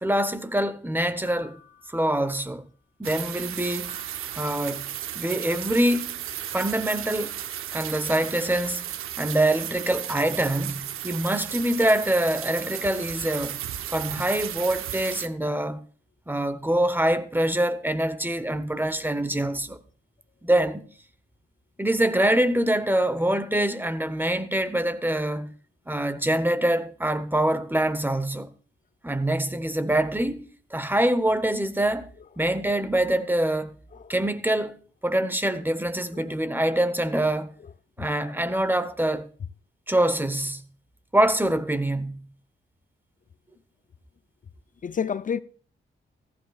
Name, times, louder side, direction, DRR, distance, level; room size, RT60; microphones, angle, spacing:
voice 1, 0.0-1.6 1.9-2.6 3.0-4.0 4.4-4.9 5.1-6.2 6.5-7.4 7.7-8.8 9.2-13.6 13.9-15.8 16.3-19.8 20.4-20.8 21.8-25.5 25.9-28.5 29.0-32.1 32.4-33.7 34.1-37.5 38.0-39.3 39.9-40.6 41.1-42.3, right 1 dB, 10° right, 0.9 m, -25 dB
sound 1, 1.2-2.7 3.9-5.3, left 2 dB, 65° right, 6.5 m, -53 dB
sound 2, 3.0-15.3, right 11 dB, 85° right, 0.6 m, -34 dB
voice 2, 44.8-45.4, left 7 dB, 40° left, 0.4 m, -30 dB
14.5 x 14.0 x 2.4 m
cardioid pair, 60°, 21 cm